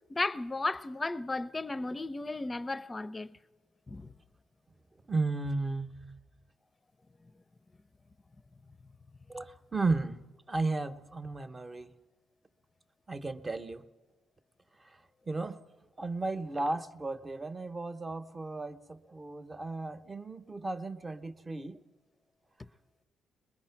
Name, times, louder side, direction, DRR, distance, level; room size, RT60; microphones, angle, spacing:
voice 1, 0.1-3.4 3.9-4.1, left 2 dB, 20° left, 0.7 m, -34 dB
voice 2, 5.1-6.2 9.3-10.2 10.5-11.9 13.1-13.8 15.3-15.6 16.0-21.8, right 3 dB, 25° right, 1.0 m, -34 dB
23.0 x 21.0 x 5.9 m
cardioid pair, 90°, 0 cm